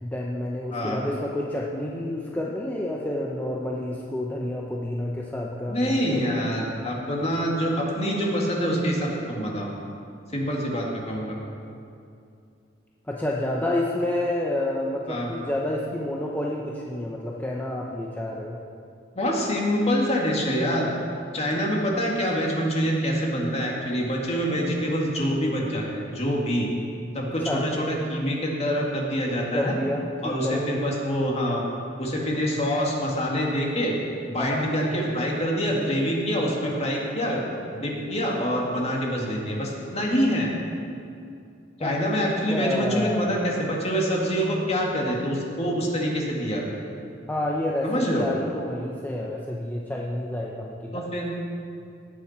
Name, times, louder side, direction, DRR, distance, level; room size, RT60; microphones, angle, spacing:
voice 1, 0.0-6.2 13.1-18.6 27.4-27.6 29.5-30.6 34.4-34.6 41.8-41.9 42.5-43.4 47.3-51.0, left 1 dB, 10° left, -3 dB, 0.8 m, -29 dB
voice 2, 0.7-1.0 5.7-9.7 10.3-11.4 15.1-15.3 19.1-20.9 21.3-26.7 27.1-29.7 30.2-31.6 32.0-33.9 34.3-37.4 37.7-40.5 41.8-46.8 47.8-48.3 50.9-51.3, equal, 35° left, -2 dB, 2.2 m, -26 dB
18.0 x 8.7 x 4.4 m, 2.5 s
head